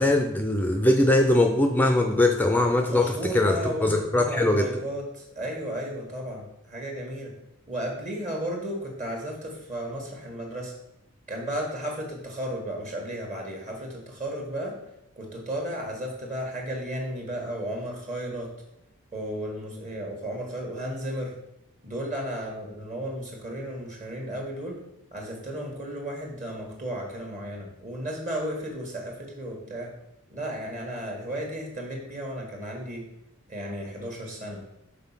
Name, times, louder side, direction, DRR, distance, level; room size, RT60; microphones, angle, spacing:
voice 1, 0.0-4.7, left 1 dB, 10° left, 3 dB, 0.5 m, -21 dB
voice 2, 2.8-7.3 7.7-10.7 11.3-14.8 15.2-18.5 19.1-21.3 21.8-24.8 25.1-29.9 30.3-33.0 33.5-34.6, right 1 dB, 35° right, 0 dB, 1.5 m, -34 dB
5.9 x 4.0 x 5.7 m, 0.85 s
head